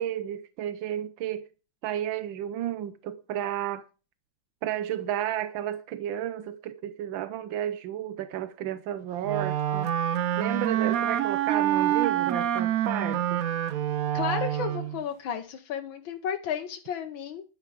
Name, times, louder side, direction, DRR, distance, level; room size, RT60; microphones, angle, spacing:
voice 1, 0.0-1.5 1.8-3.8 4.6-9.9 10.4-13.4, right 11 dB, 85° right, 1.6 m, -32 dB
Wind instrument woodwind instrument, 9.2-15.0, right 11 dB, 60° right, 1.0 m, -27 dB
voice 2, 14.1-17.4, left 8 dB, 90° left, 1.8 m, -33 dB
11.5 x 9.6 x 5.0 m
omnidirectional pair, 2.1 m